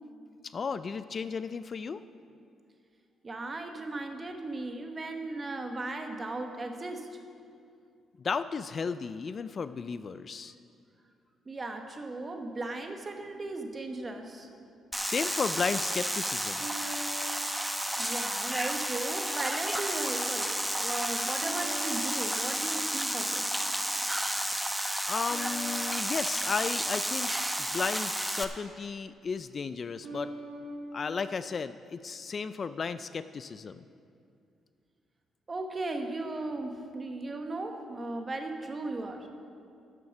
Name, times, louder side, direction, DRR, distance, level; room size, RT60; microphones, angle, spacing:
voice 1, 0.4-2.0 8.2-10.6 15.0-16.7 25.0-27.3 27.6-30.3 30.9-33.8, left 5 dB, 45° left, 13 dB, 0.3 m, -34 dB
voice 2, 3.2-7.1 11.5-14.5 17.2-17.3 18.0-23.5 35.5-39.3, right 2 dB, 30° right, 4 dB, 1.3 m, -36 dB
sound 1, 12.8-13.6 16.6-18.6 19.2-19.7 21.4-23.4 25.3-27.7 30.0-31.1, right 1 dB, 85° right, 3.3 m, -46 dB
sound 2, 14.9-28.4, right 1 dB, 5° right, 0.8 m, -32 dB
13.0 x 7.2 x 5.9 m, 2.4 s
cardioid pair, 90°, 0 cm